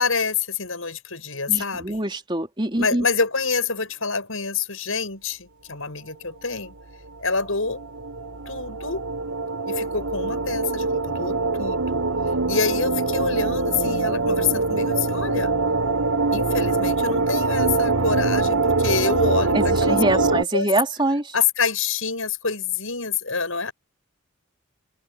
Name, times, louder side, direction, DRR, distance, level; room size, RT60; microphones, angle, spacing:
voice 1, 0.0-2.0 2.8-6.7 7.2-7.8 8.5-9.0 9.7-12.0 12.5-15.5 16.3-20.7 21.3-23.7, left 5 dB, 70° left, 7.7 m, -26 dB
voice 2, 1.5-3.0 19.5-21.3, right 1 dB, 20° right, 3.7 m, -24 dB
sound 1, 7.3-20.4, right 3 dB, 90° right, 4.8 m, -23 dB
open air
head